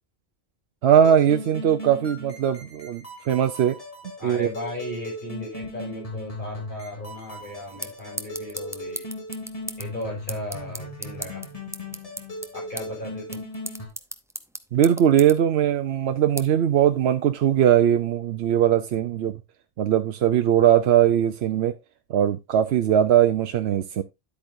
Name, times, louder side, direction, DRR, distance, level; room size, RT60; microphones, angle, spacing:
voice 1, 0.8-3.8 4.2-4.5 14.7-19.4 19.8-21.7 22.1-24.0, right 10 dB, 80° right, 0.9 m, -20 dB
sound 1, 0.9-13.9, left 1 dB, 35° left, 3.8 m, -38 dB
voice 2, 4.2-9.1 9.8-11.4 12.5-13.4, left 1 dB, 50° left, 5.6 m, -36 dB
sound 2, 7.2-17.7, right 1 dB, 5° right, 0.5 m, -40 dB
10.5 x 8.4 x 2.6 m
omnidirectional pair, 1.1 m